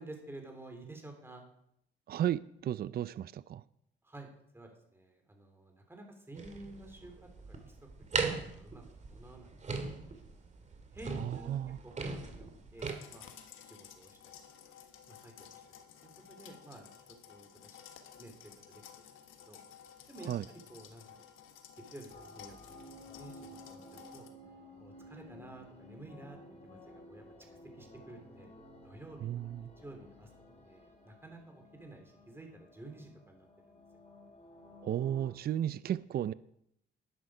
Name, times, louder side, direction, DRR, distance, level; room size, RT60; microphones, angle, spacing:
voice 1, 0.0-1.4 4.0-4.3 4.5-7.8 8.2-8.8 9.1-9.5 10.0-10.2 10.9-13.3 13.6-14.2 14.7-14.8 15.1-15.6 16.3-16.9 17.3-17.8 18.2-18.3 18.7-19.1 19.4-19.6 20.1-21.2 21.9-22.6 23.1-23.4 23.7-24.3 24.8-26.4 26.6-27.2 27.7-28.5 28.8-29.2 29.5-30.3 30.6-33.8, right 2 dB, 10° right, 3 dB, 3.4 m, -51 dB
voice 2, 2.1-3.6 11.2-11.8 20.2-20.4 29.2-29.6 34.8-36.3, right 11 dB, 50° right, 17 dB, 0.5 m, -34 dB
sound 1, 6.4-12.9, right 4 dB, 35° right, 2.1 m, -39 dB
sound 2, 12.8-24.3, left 9 dB, 90° left, 1.4 m, -54 dB
sound 3, 22.1-35.3, left 1 dB, 35° left, 3.9 m, -54 dB
11.5 x 10.5 x 5.0 m, 0.74 s
cardioid pair, 90°, 20 cm